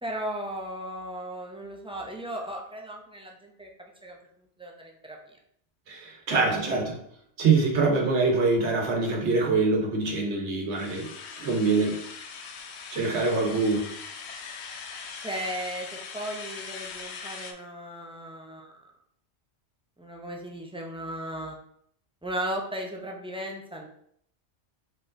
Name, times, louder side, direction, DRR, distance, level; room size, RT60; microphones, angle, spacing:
voice 1, 0.0-4.2 4.6-5.2 6.5-6.6 15.1-18.8 20.0-21.6 22.2-23.9, right 1 dB, 10° right, 0 dB, 0.4 m, -36 dB
voice 2, 5.9-6.9 7.4-11.1 11.4-12.0 12.9-13.8, right 3 dB, 80° right, 1 dB, 1.2 m, -24 dB
sound 1, 10.8-17.5, left 5 dB, 75° left, 0.8 m, -41 dB
4.5 x 4.5 x 2.5 m, 0.68 s
omnidirectional pair, 1.1 m